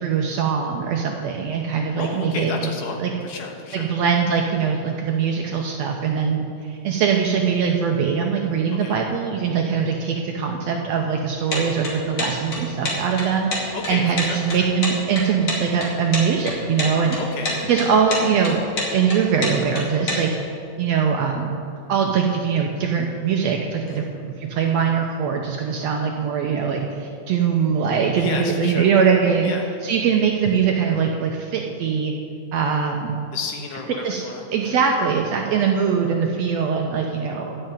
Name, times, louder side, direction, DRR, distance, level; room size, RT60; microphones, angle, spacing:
voice 1, 0.0-2.7 3.0-3.1 3.7-17.2 17.4-18.6 18.9-20.3 20.8-21.6 21.9-29.5 29.8-32.1 32.5-33.2 34.0-34.2 34.5-37.6, right 6 dB, 75° right, 1 dB, 1.6 m, -22 dB
voice 2, 2.0-3.9 8.8-9.0 13.7-14.7 17.2-17.6 23.9-24.1 28.2-28.9 29.4-29.7 33.3-34.7, left 4 dB, 75° left, 2 dB, 2.7 m, -32 dB
sound 1, 11.5-20.2, left 2 dB, 45° left, 2.9 m, -27 dB
12.0 x 6.6 x 8.9 m, 2.5 s
omnidirectional pair, 3.7 m